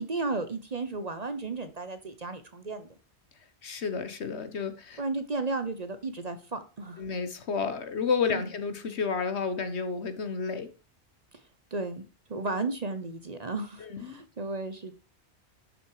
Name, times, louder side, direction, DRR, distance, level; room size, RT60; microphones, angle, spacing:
voice 1, 0.0-2.9 5.0-7.0 8.3-8.5 11.7-12.0 12.3-14.9, right 3 dB, 40° right, 10 dB, 0.9 m, -34 dB
voice 2, 3.6-5.0 7.0-10.7 13.8-14.2, left 5 dB, 70° left, 10 dB, 1.5 m, -31 dB
11.5 x 6.3 x 4.8 m, 0.34 s
omnidirectional pair, 1.2 m